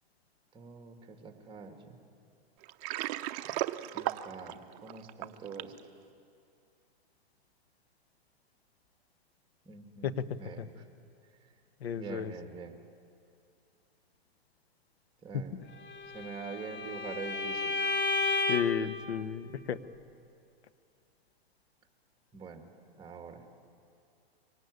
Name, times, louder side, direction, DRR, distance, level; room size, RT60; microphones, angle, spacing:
voice 1, 0.5-2.0 3.9-5.7 9.7-10.9 12.0-12.8 15.2-15.6 16.1-17.9 22.3-22.7 23.0-23.4, right 5 dB, 15° right, 5 dB, 2.4 m, -45 dB
Water, 2.6-5.8, right 15 dB, 35° right, 0.8 m, -35 dB
voice 2, 11.8-12.3 15.3-15.4 18.5-19.8, left 8 dB, 75° left, 12 dB, 1.3 m, -33 dB
Bowed string instrument, 15.8-18.9, left 3 dB, 55° left, 2.7 m, -32 dB
24.0 x 18.0 x 9.7 m, 2.5 s
hypercardioid pair, 135°, 31 cm